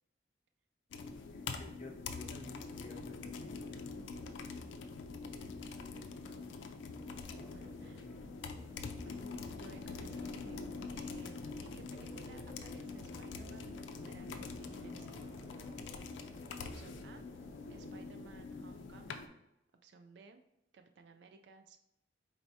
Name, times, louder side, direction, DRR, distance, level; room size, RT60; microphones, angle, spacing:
sound 1, 0.9-19.3, left 4 dB, 90° left, 0.4 m, -45 dB
voice 1, 1.3-4.7 5.3-6.6 7.8-8.2, left 3 dB, 40° left, 0 dB, 0.7 m, -55 dB
sound 2, 6.9-18.1, left 1 dB, 15° right, 0.5 m, -58 dB
voice 2, 7.5-8.1 8.9-9.2 9.5-10.6 10.9-15.4 16.6-17.3 17.7-19.3 19.8-20.4 20.7-21.8, right 4 dB, 70° right, 6 dB, 0.3 m, -58 dB
4.5 x 4.2 x 2.7 m, 0.86 s
head